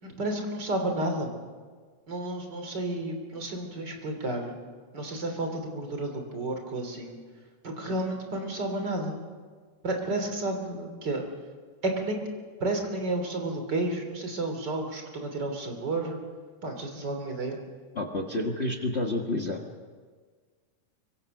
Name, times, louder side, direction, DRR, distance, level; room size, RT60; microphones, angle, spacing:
voice 1, 0.0-1.3 2.1-4.6 4.9-7.2 7.6-9.2 9.8-11.2 11.8-12.2 12.6-16.2 16.6-17.6, right 2 dB, 30° right, 4 dB, 3.4 m, -31 dB
voice 2, 17.9-19.7, left 2 dB, 65° left, 2 dB, 0.6 m, -29 dB
24.5 x 24.5 x 6.6 m, 1.5 s
omnidirectional pair, 3.8 m